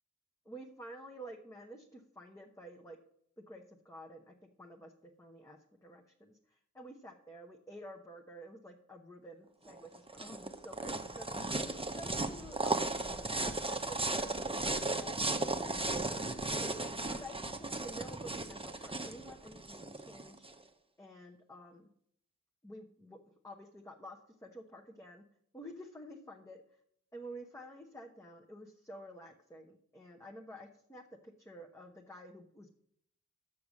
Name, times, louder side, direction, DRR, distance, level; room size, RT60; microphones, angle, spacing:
voice 1, 0.5-3.0 3.5-11.3 11.6-12.9 13.7-16.8 17.1-20.4 21.0-21.9 22.6-23.2 23.4-25.2 25.5-26.6 27.1-32.7, equal, 10° left, 1 dB, 0.9 m, -50 dB
sound 1, 9.7-20.5, right 2 dB, 20° right, 0.8 m, -36 dB
6.7 x 6.5 x 7.2 m, 0.69 s
wide cardioid pair, 70°, 29 cm